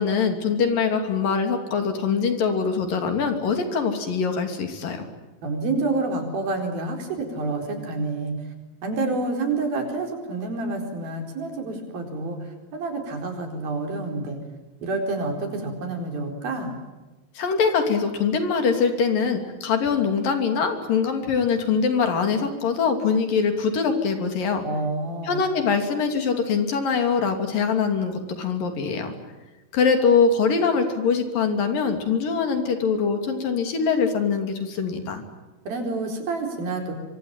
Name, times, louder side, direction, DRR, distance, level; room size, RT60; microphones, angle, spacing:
voice 1, 0.0-5.1 17.4-24.7 25.2-29.1 29.7-35.2, left 5 dB, 60° left, 6 dB, 4.4 m, -23 dB
voice 2, 5.4-8.3 8.8-14.4 14.8-16.7 24.6-25.5 35.7-36.9, right 3 dB, 70° right, 4 dB, 6.2 m, -28 dB
25.0 x 25.0 x 9.0 m, 1.2 s
omnidirectional pair, 4.5 m